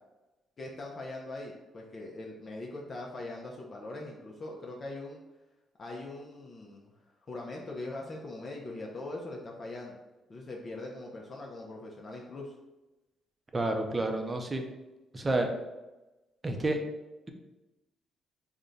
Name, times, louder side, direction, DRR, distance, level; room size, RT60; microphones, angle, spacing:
voice 1, 0.6-5.2 5.8-6.9 7.3-10.0 10.3-12.5, left 2 dB, 40° left, -1 dB, 0.5 m, -41 dB
voice 2, 13.5-14.6 15.1-15.5 16.4-16.8, right 2 dB, 25° right, 4 dB, 0.5 m, -29 dB
3.5 x 2.2 x 3.9 m, 1.1 s
cardioid pair, 90°, 0 cm